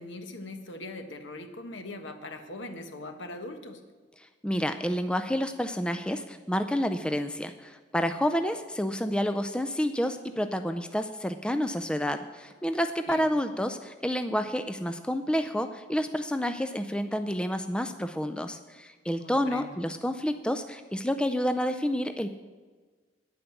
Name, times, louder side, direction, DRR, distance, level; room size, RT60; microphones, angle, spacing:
voice 1, 0.0-3.8 13.1-13.3 19.2-19.8, left 2 dB, 80° left, 7 dB, 1.2 m, -41 dB
voice 2, 4.2-22.3, equal, 5° left, 8 dB, 0.3 m, -29 dB
10.0 x 8.8 x 7.0 m, 1.4 s
head